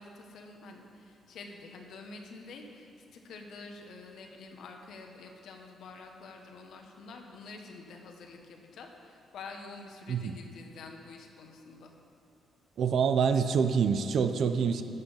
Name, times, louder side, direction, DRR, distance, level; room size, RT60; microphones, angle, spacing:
voice 1, 0.0-11.9, left 3 dB, 70° left, 3 dB, 1.3 m, -48 dB
voice 2, 12.8-14.8, right 6 dB, 65° right, 8 dB, 0.6 m, -26 dB
13.5 x 6.8 x 5.7 m, 2.6 s
cardioid pair, 90°, 0 cm